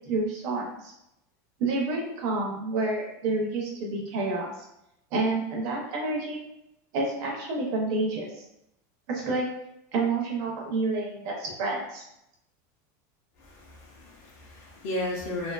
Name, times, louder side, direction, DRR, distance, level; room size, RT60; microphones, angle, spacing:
voice 1, 0.1-0.9 1.6-4.5 5.1-6.5 6.9-8.4 9.1-9.5 9.9-12.0, right 3 dB, 40° right, -1 dB, 0.6 m, -29 dB
voice 2, 13.4-15.5, left 1 dB, 45° left, -4 dB, 0.6 m, -34 dB
2.4 x 2.4 x 2.3 m, 0.81 s
supercardioid pair, 175°, 9 cm